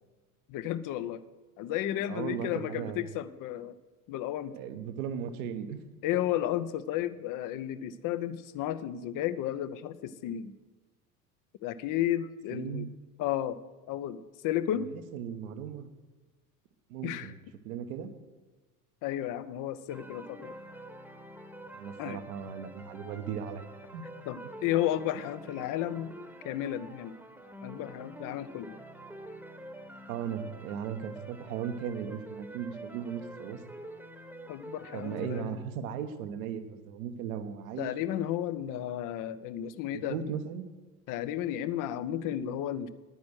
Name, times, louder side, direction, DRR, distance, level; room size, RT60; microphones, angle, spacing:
voice 1, 0.5-1.2 1.6-3.7 4.1-4.5 6.0-10.5 11.6-12.9 13.2-13.6 13.9-14.9 17.0-17.3 19.0-20.5 22.0-22.2 24.3-26.1 26.4-27.2 27.6-28.8 34.5-35.6 37.8-40.2 41.1-42.9, left 12 dB, 45° left, 15 dB, 0.8 m, -33 dB
voice 2, 2.1-3.0 4.5-5.8 12.5-12.9 14.8-15.9 16.9-17.3 17.6-18.1 21.7-23.7 23.9-24.1 30.1-33.6 34.9-37.9 39.9-40.6, right 8 dB, 65° right, 9 dB, 1.2 m, -37 dB
sound 1, 19.9-35.4, right 1 dB, 5° right, 1.1 m, -47 dB
10.5 x 9.4 x 6.3 m, 1.2 s
hypercardioid pair, 75°, 45 cm